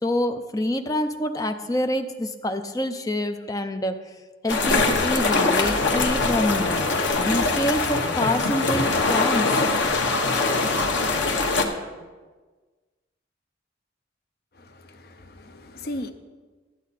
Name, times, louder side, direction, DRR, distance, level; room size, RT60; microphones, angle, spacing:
voice 1, 0.0-3.9 4.4-9.6, left 1 dB, 20° left, 6 dB, 0.5 m, -26 dB
sound 1, 4.5-11.6, left 3 dB, 90° left, 1.0 m, -22 dB
voice 2, 14.5-16.1, left 1 dB, 55° left, 9 dB, 0.7 m, -37 dB
12.0 x 8.5 x 4.1 m, 1.3 s
head